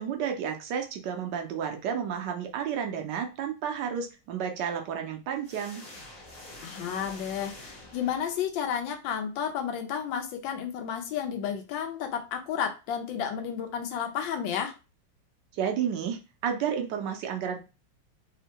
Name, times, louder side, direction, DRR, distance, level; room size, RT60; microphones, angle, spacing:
voice 1, 0.0-5.8 15.5-17.6, right 8 dB, 75° right, 4 dB, 1.2 m, -31 dB
sound 1, 5.4-8.8, left 1 dB, 45° left, 0.8 m, -46 dB
voice 2, 6.6-14.7, left 8 dB, 85° left, 5 dB, 1.3 m, -32 dB
3.5 x 2.1 x 2.8 m, 0.30 s
omnidirectional pair, 2.0 m